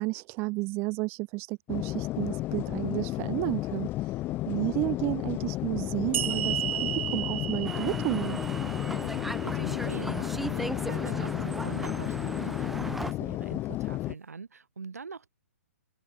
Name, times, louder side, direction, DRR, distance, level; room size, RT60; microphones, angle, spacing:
voice 1, 0.0-8.4, right 25 dB, 30° right, 4.1 m, -32 dB
sound 1, 1.7-14.1, left 17 dB, 25° left, 5.7 m, -32 dB
sound 2, 6.1-9.5, right 12 dB, 50° right, 7.9 m, -33 dB
sound 3, 7.6-13.1, right 1 dB, ahead, 1.2 m, -36 dB
voice 2, 9.4-15.3, right 5 dB, 85° right, 6.1 m, -43 dB
open air
hypercardioid pair, 140°, 8 cm